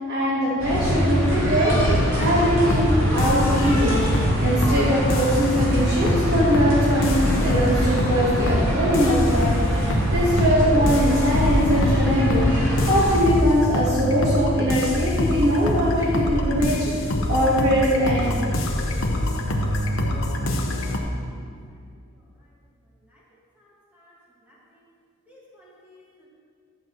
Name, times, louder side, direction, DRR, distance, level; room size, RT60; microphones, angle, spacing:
voice 1, 0.0-4.0 4.4-12.5 12.9-18.3, equal, 50° right, -7 dB, 1.3 m, -22 dB
sound 1, 0.6-13.2, equal, 70° right, 2.1 m, -24 dB
sound 2, 1.8-21.0, left 1 dB, 70° left, 0.8 m, -25 dB
voice 2, 23.6-24.1 24.4-24.9 25.3-26.3, left 1 dB, 5° right, -7 dB, 1.8 m, -55 dB
11.5 x 7.1 x 3.0 m, 2.2 s
head